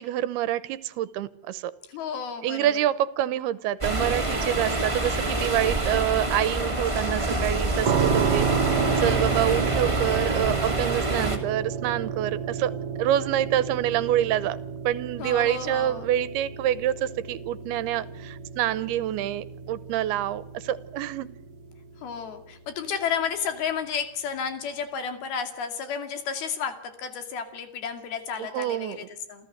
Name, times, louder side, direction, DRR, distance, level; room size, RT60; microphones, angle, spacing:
voice 1, 0.0-1.7 2.4-12.7 13.0-14.6 14.8-21.3 28.4-29.1, right 12 dB, 85° right, 17 dB, 2.9 m, -27 dB
voice 2, 1.9-2.7 15.2-16.1 22.0-29.5, left 7 dB, 75° left, 8 dB, 4.3 m, -32 dB
sound 1, 3.8-11.4, right 2 dB, 10° right, 1.9 m, -26 dB
sound 2, 7.8-22.7, right 7 dB, 60° right, 1.6 m, -31 dB
28.5 x 14.5 x 8.0 m, 0.81 s
omnidirectional pair, 4.5 m